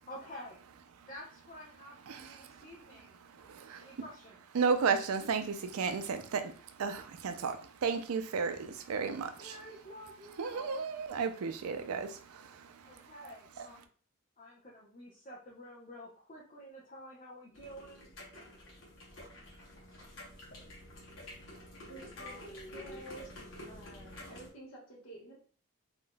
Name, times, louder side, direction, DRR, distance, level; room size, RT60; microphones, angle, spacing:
voice 1, 0.1-0.6 1.1-3.2 3.8-4.4 9.4-10.7 12.8-13.9 14.4-18.1 21.9-23.1, equal, 35° left, -4 dB, 0.6 m, -50 dB
voice 2, 2.1-2.7 3.2-4.0 4.5-9.6 10.4-13.1, right 5 dB, 85° right, 9 dB, 0.4 m, -34 dB
sound 1, 17.5-24.5, left 1 dB, 60° left, 1.0 m, -50 dB
voice 3, 21.9-23.3 23.7-25.4, right 1 dB, 85° left, -3 dB, 1.3 m, -50 dB
3.7 x 2.5 x 2.2 m, 0.43 s
head